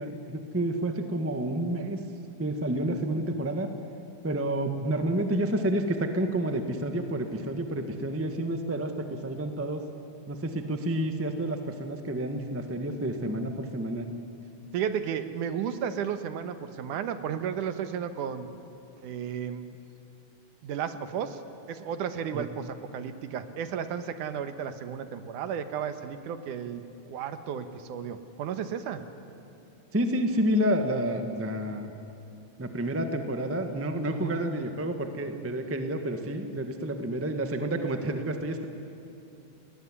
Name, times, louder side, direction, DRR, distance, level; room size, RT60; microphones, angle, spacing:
voice 1, 0.0-2.0 2.4-3.7 4.2-9.8 10.3-14.1 22.3-22.5 29.9-31.9 32.6-38.6, right 1 dB, 10° right, 6 dB, 0.6 m, -29 dB
voice 2, 14.7-18.5 19.0-19.8 20.6-21.4 21.7-29.0 34.1-34.4, right 8 dB, 85° right, 9 dB, 2.7 m, -33 dB
29.5 x 20.0 x 10.0 m, 2.7 s
omnidirectional pair, 3.6 m